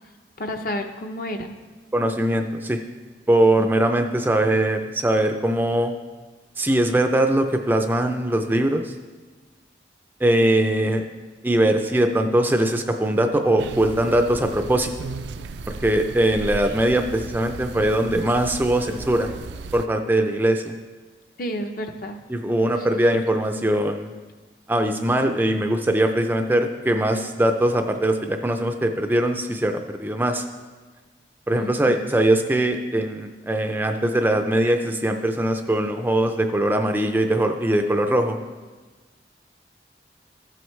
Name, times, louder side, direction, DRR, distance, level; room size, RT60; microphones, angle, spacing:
voice 1, 0.4-1.6 3.6-3.7 21.4-22.2 22.7-23.2 31.5-32.0, equal, 50° left, 5 dB, 0.7 m, -31 dB
voice 2, 1.9-2.8 3.3-5.9 6.6-8.9 10.2-11.0 11.4-14.9 15.7-19.3 19.7-20.7 22.3-24.1 24.7-30.4 31.5-38.4, right 1 dB, 10° right, 5 dB, 0.4 m, -21 dB
sound 1, 13.6-19.9, right 3 dB, 80° right, 0.4 m, -36 dB
13.5 x 7.8 x 3.2 m, 1.3 s
head